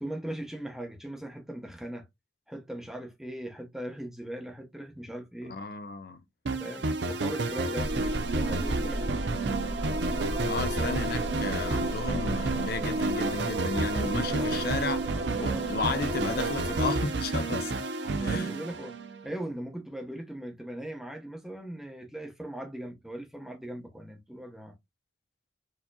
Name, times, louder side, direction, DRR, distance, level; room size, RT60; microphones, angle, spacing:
voice 1, 0.0-2.1 2.5-5.6 6.6-9.1 10.8-10.9 14.1-14.8 15.2-15.7 18.0-24.8, right 1 dB, ahead, 0.7 m, -39 dB
voice 2, 5.5-6.2 10.4-15.0 15.4-17.8 18.2-18.6, left 3 dB, 55° left, 0.6 m, -33 dB
sound 1, 6.4-19.4, right 2 dB, 70° right, 0.6 m, -31 dB
sound 2, 7.8-16.9, right 2 dB, 50° right, 1.0 m, -34 dB
4.6 x 2.8 x 2.2 m
head